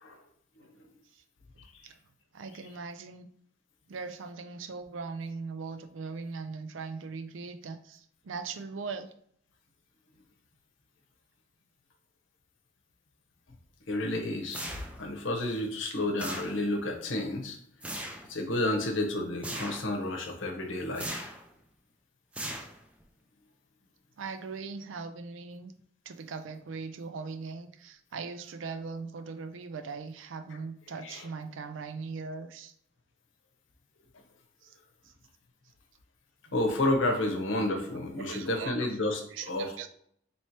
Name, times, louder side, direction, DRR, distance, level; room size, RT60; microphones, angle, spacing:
voice 1, 2.3-3.3 3.9-9.1 24.2-25.7 26.1-32.7 34.6-34.8 35.0-35.1 38.2-39.9, right 4 dB, 85° right, 9 dB, 0.4 m, -40 dB
voice 2, 13.9-14.6 15.0-17.6 18.3-21.3 31.0-31.2 36.5-39.2 39.5-39.9, left 1 dB, 85° left, 2 dB, 0.8 m, -30 dB
sound 1, 14.5-15.2 16.2-16.9 17.8-18.3 19.4-19.9 20.9-21.5 22.3-23.0, right 1 dB, 5° right, 0.3 m, -39 dB
3.0 x 2.9 x 4.5 m, 0.64 s
head